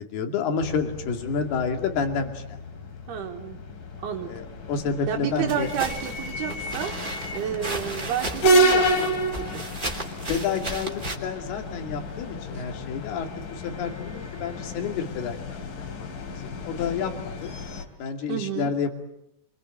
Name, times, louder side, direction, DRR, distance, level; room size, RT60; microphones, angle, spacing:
voice 1, 0.0-2.6 3.2-3.3 4.2-5.7 10.3-17.5 18.0-18.9, left 5 dB, 75° left, 5 dB, 4.3 m, -30 dB
sound 1, 0.6-17.9, right 1 dB, 55° left, 4.3 m, -30 dB
voice 2, 3.1-3.6 4.0-4.3 5.1-6.9 7.3-9.6 18.3-18.7, right 9 dB, 75° right, 3 dB, 3.4 m, -31 dB
sound 2, 5.5-11.2, right 2 dB, 15° right, 2.4 m, -34 dB
26.5 x 24.5 x 8.9 m, 0.85 s
omnidirectional pair, 4.6 m